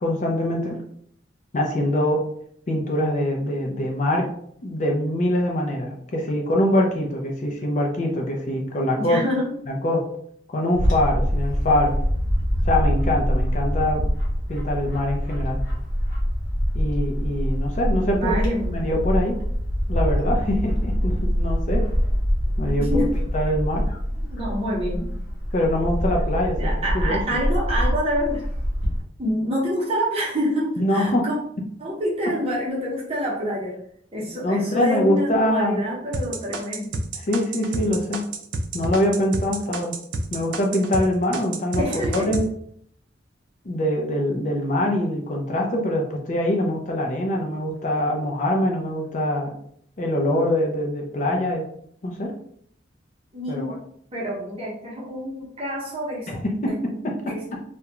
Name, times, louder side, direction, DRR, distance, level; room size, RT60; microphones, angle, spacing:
voice 1, 0.0-0.8 1.5-2.2 2.7-4.3 4.6-9.2 9.7-10.1 10.5-12.0 12.6-14.0 14.5-15.6 16.7-18.4 18.7-19.4 19.9-21.9 22.6-23.1 23.3-23.9 25.5-27.4 30.8-31.3 32.3-32.4 34.4-35.8 37.1-38.3 38.7-40.0 40.3-41.8 42.1-42.5 43.6-49.5 50.0-51.7 52.0-52.3 53.5-53.8 56.3-57.6, left 1 dB, 40° left, 0 dB, 0.4 m, -24 dB
voice 2, 9.0-9.5 18.0-18.8 22.8-23.1 24.2-25.1 26.6-28.4 29.2-31.4 31.8-33.8 34.1-36.9 41.8-42.3 53.3-53.8 54.1-56.3 57.3-57.4, equal, 30° right, -4 dB, 0.8 m, -27 dB
Bird / Wind, 10.7-29.0, equal, 65° left, 0.9 m, -24 dB
sound 1, 36.1-41.1 41.3-42.5, right 2 dB, 75° right, 0.4 m, -28 dB
2.3 x 2.2 x 2.9 m, 0.65 s
head